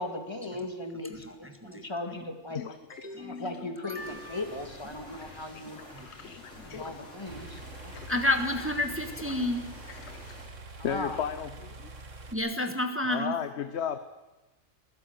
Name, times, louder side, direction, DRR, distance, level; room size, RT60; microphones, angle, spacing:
voice 1, 0.0-2.6 3.2-5.8 6.6-7.9 10.8-11.2, left 2 dB, 20° left, 6 dB, 2.1 m, -38 dB
voice 2, 1.1-1.9 2.9-4.4 5.9-6.3 6.7-6.9 7.3-7.7 8.1-9.7 12.3-13.5, left 1 dB, 10° right, 6 dB, 1.5 m, -32 dB
voice 3, 2.5-3.5 6.2-7.0 7.9-8.1 10.1-10.3 10.8-11.7 13.1-14.0, left 8 dB, 65° left, 11 dB, 1.1 m, -35 dB
sound 1, 3.9-10.5, left 1 dB, 85° left, 5.8 m, -48 dB
sound 2, 7.3-12.3, right 3 dB, 85° right, 2.2 m, -45 dB
22.0 x 15.5 x 7.9 m, 1.1 s
omnidirectional pair, 1.3 m